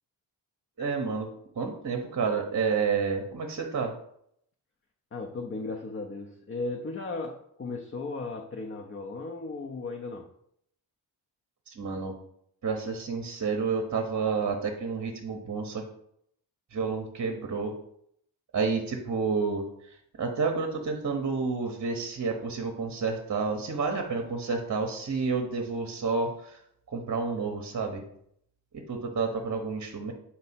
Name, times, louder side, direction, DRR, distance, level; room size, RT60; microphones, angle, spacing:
voice 1, 0.8-1.3 1.6-3.9 11.7-12.1 12.6-15.8 16.7-17.7 18.5-19.6 20.2-26.6 26.9-28.0 28.7-30.1, right 4 dB, 35° right, 4 dB, 0.8 m, -30 dB
voice 2, 5.1-10.3, left 3 dB, 30° left, 3 dB, 0.6 m, -36 dB
4.2 x 2.7 x 4.2 m, 0.70 s
cardioid pair, 50°, 47 cm